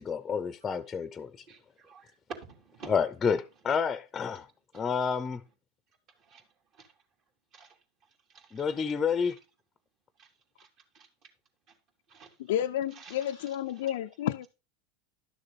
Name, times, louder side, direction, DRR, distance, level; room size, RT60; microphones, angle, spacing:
voice 1, 0.0-1.3 2.9-4.4 4.7-5.4 8.5-9.4, left 6 dB, 25° left, 0.6 m, -29 dB
voice 2, 1.5-2.1 2.5-2.9 4.7-4.9 6.2-6.5 6.7-6.9 7.5-9.4 10.2-10.3 10.6-10.7 10.9-11.1 11.7-11.8 12.1-12.4 12.9-13.6, right 5 dB, 45° right, 2.8 m, -54 dB
voice 3, 12.5-14.5, left 11 dB, 75° left, 0.4 m, -31 dB
11.5 x 6.6 x 4.0 m
hypercardioid pair, 105°, 0 cm